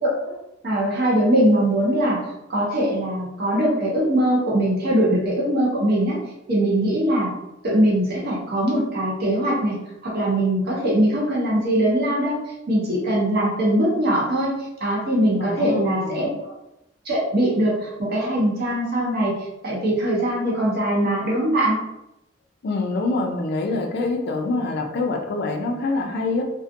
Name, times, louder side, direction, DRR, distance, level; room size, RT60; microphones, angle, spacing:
voice 1, 0.0-0.3 0.6-2.2 2.5-6.2 6.5-7.3 7.6-9.8 10.0-12.4 12.7-14.5 14.8-16.3 17.0-19.4 19.6-21.8, right 1 dB, 55° right, -5 dB, 0.9 m, -21 dB
voice 2, 15.4-16.3 22.6-26.4, left 3 dB, 55° left, 3 dB, 0.4 m, -25 dB
2.5 x 2.1 x 2.5 m, 0.90 s
head